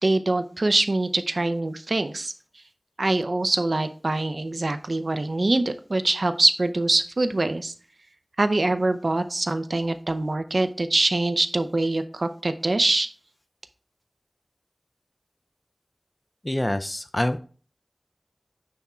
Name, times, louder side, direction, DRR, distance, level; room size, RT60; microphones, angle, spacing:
voice 1, 0.0-2.3 3.0-7.7 8.4-13.1, right 2 dB, 80° right, 10 dB, 0.6 m, -24 dB
voice 2, 16.4-17.4, left 1 dB, 30° left, 10 dB, 0.4 m, -26 dB
9.6 x 3.6 x 4.3 m, 0.42 s
wide cardioid pair, 40°, 0 cm